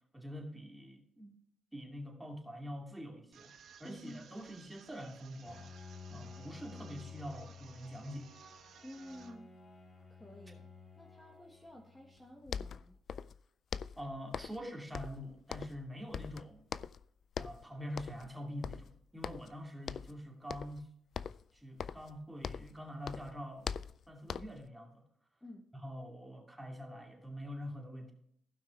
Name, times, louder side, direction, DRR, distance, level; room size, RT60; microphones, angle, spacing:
voice 1, 0.1-1.3 1.7-3.5 3.8-5.7 6.1-8.3 14.0-16.7 17.4-20.9 21.5-23.8 24.1-25.0 25.8-28.1, equal, 5° right, 0 dB, 2.6 m, -45 dB
sound 1, 3.3-9.3, right 7 dB, 65° right, 1.2 m, -59 dB
voice 2, 3.8-4.4 8.8-9.5 10.1-10.7 11.0-13.0 25.4-25.7, left 1 dB, 10° left, 0 dB, 1.5 m, -52 dB
Bowed string instrument, 5.4-12.5, left 5 dB, 35° left, 2.1 m, -53 dB
sound 2, 12.2-12.3 12.5-13.4 13.7-14.7 14.9-15.9 16.1-17.0 17.3-17.6 18.0-18.3 18.6-19.6 19.9-20.2 20.5-20.8 21.1-22.8 23.0-24.7, left 7 dB, 55° left, 0.3 m, -42 dB
16.0 x 5.8 x 3.3 m, 0.71 s
cardioid pair, 90°, 0 cm